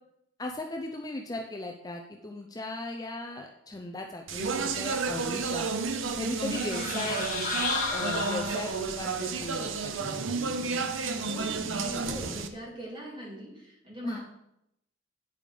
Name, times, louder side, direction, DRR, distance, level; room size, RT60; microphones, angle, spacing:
voice 1, 0.4-5.7 6.2-7.3 7.9-10.2 14.0-14.2, left 2 dB, 20° left, 3 dB, 0.5 m, -37 dB
Speech, 4.3-12.5, right 4 dB, 85° right, 0.7 m, -31 dB
sound 1, 6.4-9.0, left 4 dB, 40° left, 1.4 m, -33 dB
voice 2, 11.0-14.2, equal, 25° right, -4 dB, 2.8 m, -41 dB
9.2 x 4.9 x 5.2 m, 0.80 s
head